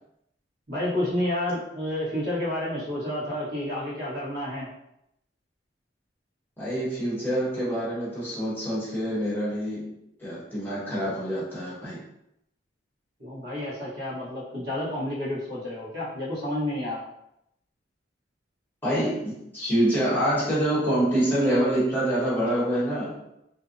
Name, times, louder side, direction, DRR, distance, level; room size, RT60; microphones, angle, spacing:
voice 1, 0.7-4.7 13.2-17.0, left 1 dB, 60° right, -8 dB, 1.0 m, -30 dB
voice 2, 6.6-9.9 10.2-12.0 18.8-23.2, right 1 dB, 10° left, -9 dB, 0.9 m, -26 dB
2.6 x 2.0 x 2.5 m, 0.81 s
head